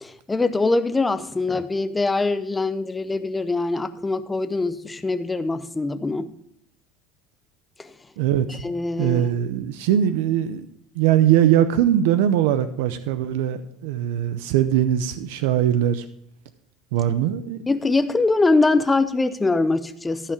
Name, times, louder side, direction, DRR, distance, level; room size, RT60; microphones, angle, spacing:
voice 1, 0.0-6.3 7.8-7.9 8.6-9.3 17.7-20.3, left 3 dB, 10° left, 12 dB, 0.5 m, -23 dB
voice 2, 8.2-8.6 9.0-10.7 10.9-16.0 16.9-17.6, right 11 dB, 85° right, 12 dB, 0.6 m, -21 dB
13.5 x 5.7 x 4.8 m, 0.74 s
cardioid pair, 155°, 0 cm